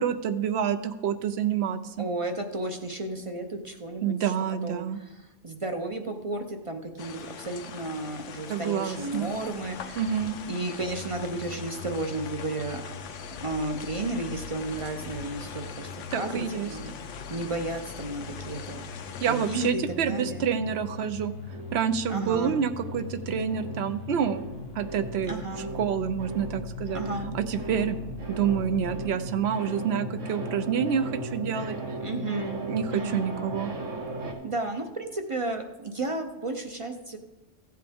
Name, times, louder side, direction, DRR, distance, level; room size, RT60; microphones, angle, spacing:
voice 1, 0.0-2.1 4.0-5.0 8.5-9.3 10.0-10.4 16.1-16.7 19.2-21.3 21.7-24.5 24.8-25.4 25.8-27.0 27.3-28.0 28.3-31.7 32.7-33.7, right 8 dB, 65° right, 11 dB, 0.8 m, -28 dB
voice 2, 2.0-4.3 4.6-12.8 13.4-20.6 22.1-22.6 25.3-25.7 26.9-27.3 32.0-32.6 32.9-33.3 34.4-37.2, right 2 dB, 35° right, 4 dB, 0.6 m, -33 dB
sound 1, 7.0-19.7, left 7 dB, 75° left, 1.0 m, -42 dB
sound 2, 10.8-29.2, left 5 dB, 55° left, 1.0 m, -44 dB
sound 3, 16.6-19.2 19.4-34.3, right 1 dB, 85° right, 1.7 m, -38 dB
15.5 x 7.6 x 3.5 m, 1.1 s
omnidirectional pair, 1.3 m